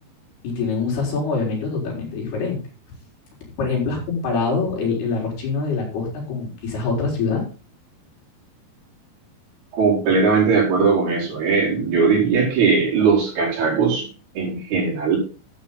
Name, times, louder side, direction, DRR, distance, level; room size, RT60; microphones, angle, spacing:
voice 1, 0.4-2.6 3.6-7.4, left 4 dB, 55° left, -2 dB, 5.8 m, -24 dB
voice 2, 9.7-14.1 14.4-15.2, right 5 dB, 55° right, -3 dB, 6.3 m, -19 dB
13.0 x 8.8 x 3.9 m, 0.35 s
omnidirectional pair, 5.4 m